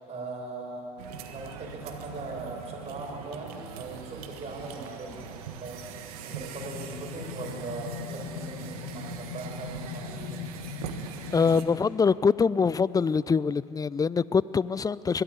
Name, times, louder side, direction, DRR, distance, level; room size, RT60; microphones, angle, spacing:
voice 1, 0.1-1.0 1.3-5.8 6.2-10.4, right 3 dB, 35° right, -1 dB, 6.2 m, -39 dB
sound 1, 1.0-11.6, right 7 dB, 75° right, 1.5 m, -42 dB
sound 2, 6.5-11.9, left 8 dB, 80° left, 1.6 m, -40 dB
voice 2, 11.3-15.2, left 5 dB, 20° left, 20 dB, 0.4 m, -24 dB
22.0 x 13.0 x 9.7 m, 2.9 s
hypercardioid pair, 70°, 19 cm